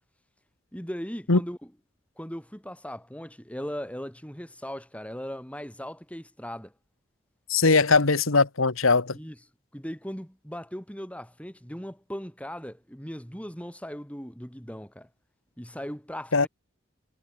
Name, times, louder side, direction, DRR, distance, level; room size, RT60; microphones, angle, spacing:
voice 1, 0.7-1.6 2.2-6.7 9.1-9.4 9.7-15.1 15.6-16.5, equal, 5° left, 7.8 m, -38 dB
voice 2, 7.5-9.2 16.3-16.5, left 4 dB, 90° left, 1.6 m, -20 dB
head